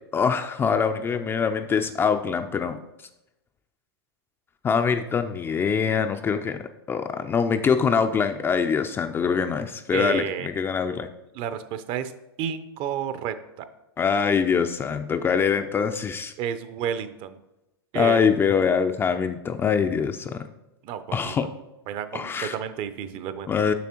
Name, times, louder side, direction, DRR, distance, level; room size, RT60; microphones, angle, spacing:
voice 1, 0.1-2.8 4.6-11.1 14.0-16.3 17.9-20.5 21.1-21.5 22.1-22.5 23.5-23.7, left 6 dB, 15° left, 8 dB, 0.3 m, -24 dB
voice 2, 9.9-10.5 11.3-12.1 12.4-13.7 16.4-17.4 17.9-18.3 20.8-21.5 21.9-23.5, right 9 dB, 40° right, 11 dB, 0.6 m, -31 dB
7.0 x 6.0 x 2.9 m, 0.92 s
hypercardioid pair, 115°, 13 cm